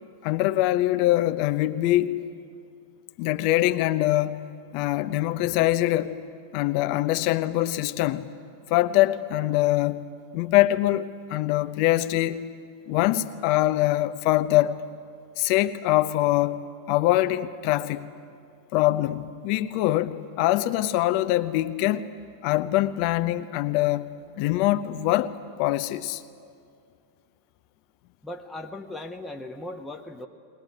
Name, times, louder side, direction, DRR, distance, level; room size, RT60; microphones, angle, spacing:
voice 1, 0.2-2.3 3.2-4.4 4.7-6.2 6.5-8.3 8.7-10.1 10.3-12.4 12.9-14.8 15.4-16.6 16.9-18.1 18.7-22.1 22.4-24.1 24.4-26.2, left 15 dB, 45° left, 0.9 m, -23 dB
voice 2, 28.2-30.3, left 2 dB, 10° left, 1.2 m, -38 dB
21.5 x 20.5 x 9.5 m
figure-of-eight pair, 90°, 0 cm